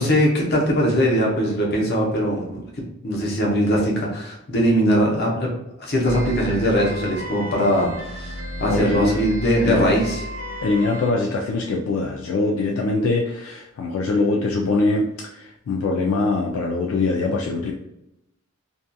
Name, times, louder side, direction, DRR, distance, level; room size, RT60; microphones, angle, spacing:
voice 1, 0.0-2.6 3.0-5.5 5.8-8.3 8.6-10.2, equal, 45° left, -2 dB, 0.7 m, -20 dB
sound 1, 6.0-11.1, equal, 85° right, 0.6 m, -32 dB
voice 2, 8.7-9.2 9.6-9.9 10.6-17.7, left 3 dB, 70° left, 0 dB, 0.3 m, -23 dB
2.7 x 2.4 x 2.2 m, 0.85 s
head